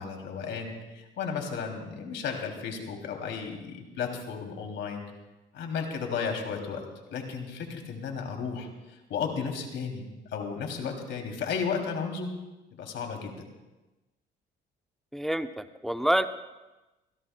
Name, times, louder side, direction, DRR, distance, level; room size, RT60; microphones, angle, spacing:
voice 1, 0.0-5.0 5.5-10.1 10.3-12.3 12.7-13.4, left 6 dB, 70° left, 2 dB, 2.8 m, -34 dB
voice 2, 15.1-16.3, right 1 dB, ahead, 9 dB, 0.6 m, -27 dB
26.5 x 17.0 x 2.2 m, 1.1 s
cardioid pair, 100°, 20 cm